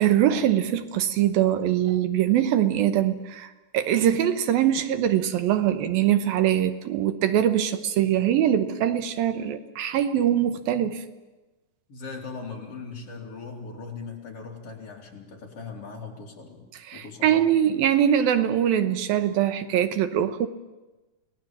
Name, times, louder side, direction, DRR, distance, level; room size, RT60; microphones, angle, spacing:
voice 1, 0.0-11.0 16.9-20.5, right 10 dB, 75° right, 9 dB, 2.7 m, -23 dB
voice 2, 11.9-16.6 16.9-17.5, left 4 dB, 40° left, 0 dB, 3.8 m, -39 dB
28.0 x 19.0 x 7.4 m, 1.1 s
omnidirectional pair, 4.3 m